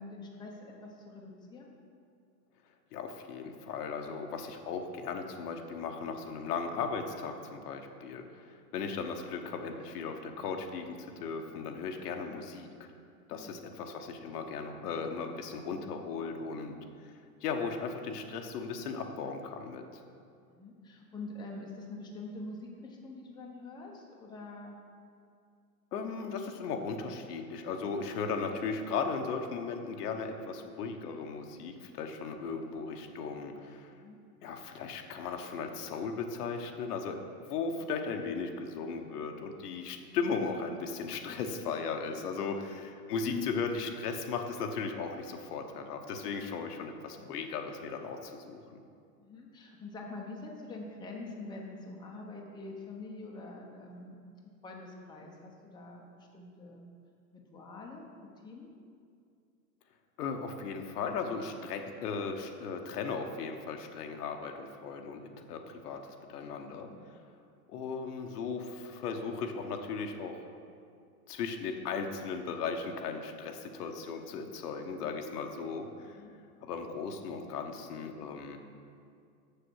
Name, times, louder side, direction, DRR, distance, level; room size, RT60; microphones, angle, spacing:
voice 1, 0.0-1.7 13.1-13.6 16.7-16.9 20.4-24.8 33.9-34.2 41.1-41.5 43.2-43.5 49.2-54.2 54.6-56.9 57.3-58.1 58.4-58.7 66.6-67.1 76.0-76.3, left 3 dB, 10° left, -1 dB, 0.9 m, -45 dB
voice 2, 2.9-12.9 13.3-16.7 17.0-17.1 17.4-19.8 25.9-33.9 34.4-37.2 37.5-48.6 60.2-65.2 65.5-66.0 66.3-66.9 67.7-70.4 71.3-76.2 76.6-78.6, left 5 dB, 70° left, 4 dB, 1.1 m, -37 dB
6.8 x 6.8 x 6.3 m, 2.3 s
hypercardioid pair, 130°, 48 cm